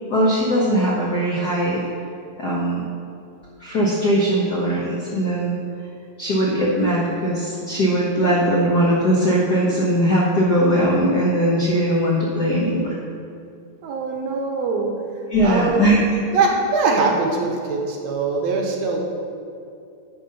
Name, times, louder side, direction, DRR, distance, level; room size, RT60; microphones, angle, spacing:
voice 1, 0.1-1.8 2.4-2.8 3.6-5.6 6.2-13.0 15.3-16.0, equal, 90° left, -5 dB, 0.8 m, -20 dB
voice 2, 13.8-14.9 15.4-15.8 16.3-19.0, right 4 dB, 75° right, 1 dB, 1.8 m, -22 dB
10.5 x 4.0 x 5.3 m, 2.5 s
omnidirectional pair, 3.4 m